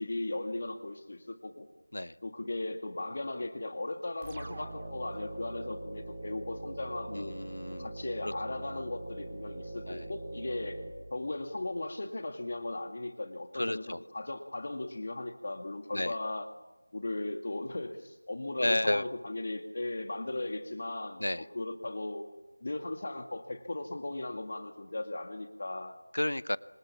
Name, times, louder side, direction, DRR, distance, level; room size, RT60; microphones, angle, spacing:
voice 1, 0.0-1.7 2.2-7.3 7.8-10.8 11.1-16.5 16.9-22.3 22.6-26.0, left 2 dB, 40° left, 7 dB, 2.1 m, -37 dB
sound 1, 4.2-11.7, right 2 dB, 15° right, 3.5 m, -43 dB
voice 2, 7.1-7.9 8.2-8.3 9.9-10.1 13.5-14.0 15.9-16.2 18.6-19.0 21.2-21.5 26.1-26.6, left 1 dB, 65° left, 18 dB, 0.9 m, -31 dB
26.5 x 26.0 x 7.3 m, 1.1 s
figure-of-eight pair, 170°, 0 cm